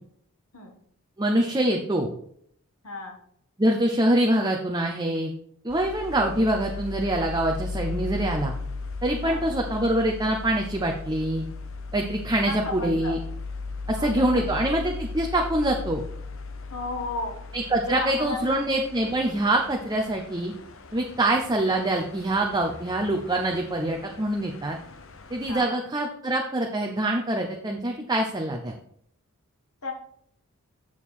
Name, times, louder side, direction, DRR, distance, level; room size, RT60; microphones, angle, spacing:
voice 1, 1.2-2.1 3.6-5.3 5.6-8.5 9.0-11.4 11.9-13.2 13.9-16.0 17.5-20.5 20.9-24.8 25.3-28.7, right 1 dB, 20° right, 1 dB, 0.6 m, -25 dB
voice 2, 2.8-3.2 9.2-9.6 12.5-13.2 13.9-14.7 16.7-17.3 17.9-18.7 21.3-21.4 25.5-25.8 29.8-29.9, left 2 dB, 80° left, 4 dB, 1.7 m, -34 dB
sound 1, 5.7-25.6, left 3 dB, 60° left, 0.8 m, -37 dB
7.3 x 6.6 x 4.2 m, 0.67 s
head